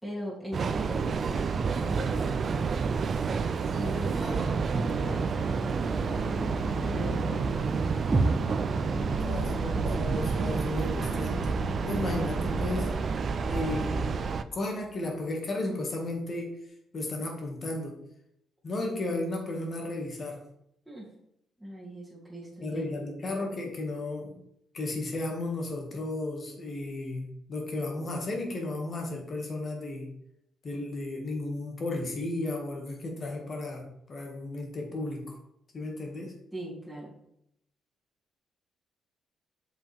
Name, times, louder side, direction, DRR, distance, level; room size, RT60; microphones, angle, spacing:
voice 1, 0.0-2.7 3.6-7.6 8.8-9.7 12.1-12.3 20.8-21.1 21.6-23.0 36.5-37.1, right 1 dB, ahead, -6 dB, 2.8 m, -40 dB
Train, 0.5-14.4, right 5 dB, 50° right, 0.4 m, -29 dB
voice 2, 4.2-4.8 9.1-11.6 11.8-12.9 13.5-14.0 14.5-16.5 16.9-18.0 18.6-20.4 22.6-24.4 24.7-30.1 30.6-35.4 35.7-36.3, left 2 dB, 40° left, 1 dB, 2.0 m, -34 dB
sound 1, 4.9-15.2, left 7 dB, 70° left, 0.6 m, -43 dB
sound 2, 8.1-12.1, right 3 dB, 30° right, 1.0 m, -33 dB
7.4 x 5.4 x 3.5 m, 0.75 s
cardioid pair, 90°, 0 cm